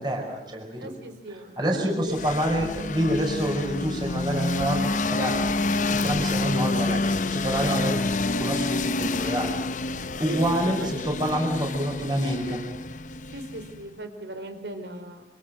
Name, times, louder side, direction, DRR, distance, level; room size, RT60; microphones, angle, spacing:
voice 1, 0.0-0.9 1.6-5.5 5.9-9.6 10.2-12.6, right 1 dB, 25° right, 1 dB, 5.3 m, -27 dB
voice 2, 0.8-1.5 1.9-2.2 10.3-11.4 13.3-15.2, right 1 dB, 80° right, 8 dB, 4.2 m, -38 dB
sound 1, 2.1-13.9, left 3 dB, 45° left, 0.8 m, -28 dB
27.5 x 26.5 x 6.5 m, 0.91 s
head